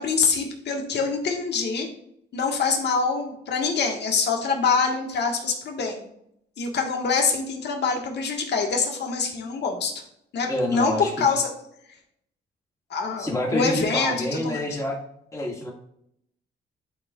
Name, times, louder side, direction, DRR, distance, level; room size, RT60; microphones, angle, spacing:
voice 1, 0.0-1.9 2.3-6.0 6.6-9.9 10.3-11.5 12.9-14.6, left 5 dB, 60° left, 2 dB, 1.5 m, -25 dB
voice 2, 10.5-11.3 13.2-15.0 15.3-15.7, left 1 dB, 15° left, -2 dB, 2.0 m, -27 dB
11.0 x 4.5 x 2.4 m, 0.73 s
cardioid pair, 90°, 20 cm